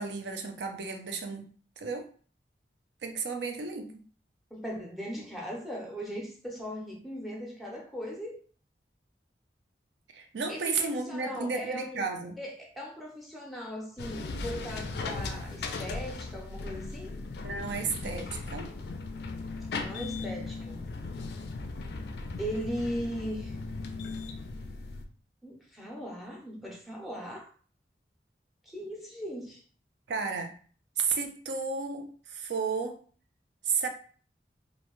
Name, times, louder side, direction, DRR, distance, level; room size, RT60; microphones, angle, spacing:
voice 1, 0.0-1.5 1.8-2.1 3.0-3.9 10.1-12.4 17.4-18.7 30.1-30.5 31.0-33.0 33.6-33.9, right 5 dB, 80° right, 5 dB, 0.4 m, -33 dB
voice 2, 4.5-8.4 10.5-12.1 12.4-17.1 19.8-20.8 22.4-23.6 25.4-27.5 28.7-29.6, equal, ahead, -2 dB, 0.5 m, -38 dB
sound 1, 14.0-25.0, left 3 dB, 65° left, 0.3 m, -37 dB
2.5 x 2.1 x 2.9 m, 0.43 s
head